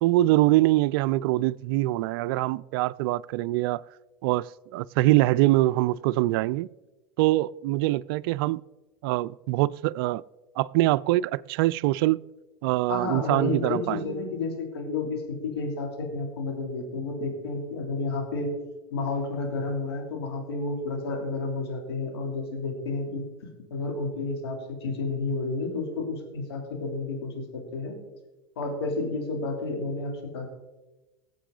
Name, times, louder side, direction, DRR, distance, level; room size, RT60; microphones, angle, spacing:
voice 1, 0.0-3.8 4.2-6.7 7.2-8.6 9.0-10.2 10.6-12.2 12.6-14.2, right 17 dB, 65° right, 0.4 m, -24 dB
voice 2, 12.9-18.5 18.9-23.2 23.7-28.0 28.6-30.5, left 3 dB, 85° left, 3.0 m, -31 dB
19.0 x 7.4 x 3.9 m
hypercardioid pair, 95°, 13 cm